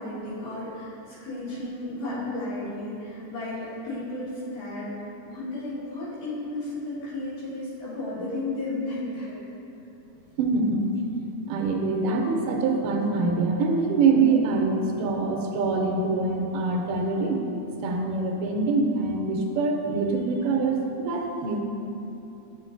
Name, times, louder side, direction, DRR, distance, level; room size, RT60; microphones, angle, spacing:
voice 1, 0.0-4.9 5.2-9.4, left 2 dB, 80° left, -10 dB, 3.2 m, -33 dB
voice 2, 10.4-10.9 11.5-17.4 17.8-21.6, right 3 dB, 85° right, 1 dB, 2.2 m, -24 dB
8.1 x 5.8 x 2.5 m, 2.8 s
omnidirectional pair, 3.7 m